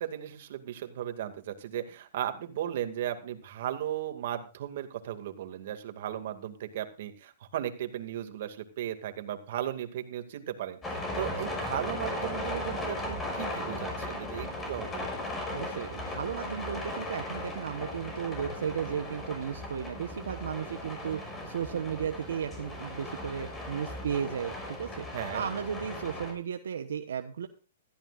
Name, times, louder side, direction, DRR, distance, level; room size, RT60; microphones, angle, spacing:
voice 1, 0.0-15.2 25.1-25.5, right 11 dB, 60° right, 7 dB, 2.3 m, -36 dB
sound 1, 10.8-26.3, left 1 dB, 15° left, 6.2 m, -37 dB
voice 2, 15.5-25.0 25.3-27.5, right 7 dB, 80° right, 6 dB, 1.2 m, -35 dB
16.5 x 14.0 x 2.5 m, 0.35 s
hypercardioid pair, 140°, 0 cm